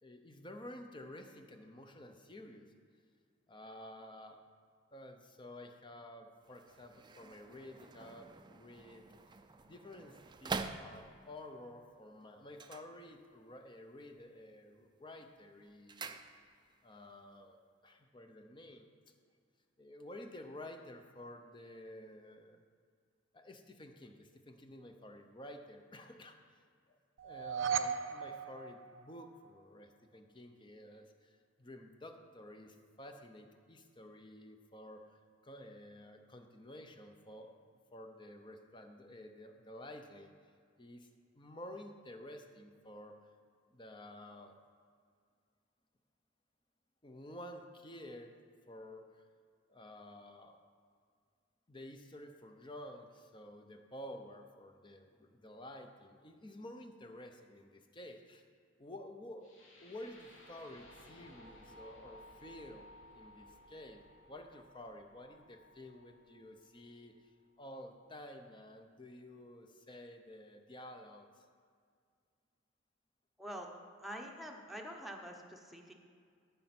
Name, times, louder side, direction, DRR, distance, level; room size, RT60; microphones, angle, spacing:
voice 1, 0.0-2.7 3.5-4.4 4.9-9.0 9.7-16.1 16.8-17.6 17.8-18.9 19.8-22.6 23.3-26.6 26.9-37.6 37.9-40.5 40.8-41.1 41.3-43.2 43.7-44.6 47.0-48.4 48.7-49.2 49.7-50.6 51.7-58.4 58.8-62.9 63.1-67.1 67.6-71.4, left 1 dB, 25° left, 5 dB, 0.8 m, -51 dB
sound 1, 6.4-11.4 12.5-13.6 13.9-14.4 14.7-16.8 17.1-17.2, right 4 dB, 25° right, 0.4 m, -46 dB
sound 2, 27.2-29.5, right 7 dB, 85° right, 0.5 m, -37 dB
sound 3, 59.4-67.4, left 1 dB, 90° left, 2.7 m, -58 dB
voice 2, 73.4-73.7 74.0-75.9, equal, ahead, 1 dB, 0.9 m, -46 dB
13.5 x 5.4 x 6.0 m, 2.2 s
head